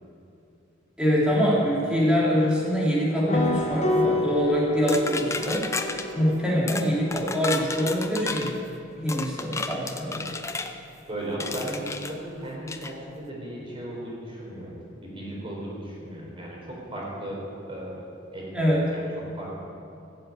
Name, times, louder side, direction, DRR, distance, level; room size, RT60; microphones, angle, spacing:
voice 1, 1.0-5.7 6.1-8.5 9.0-10.3 18.5-18.8, equal, 5° right, -6 dB, 3.5 m, -24 dB
sound 1, 3.3-8.0, left 2 dB, 35° left, 1.5 m, -29 dB
sound 2, 4.9-6.1 6.7-6.9 7.1-8.5 9.1-10.7 11.4-12.1 12.7-12.9, left 3 dB, 15° left, 0.7 m, -32 dB
voice 2, 11.1-18.1 18.3-19.6, right 1 dB, 25° right, -4 dB, 4.3 m, -36 dB
16.0 x 7.8 x 8.7 m, 2.6 s
head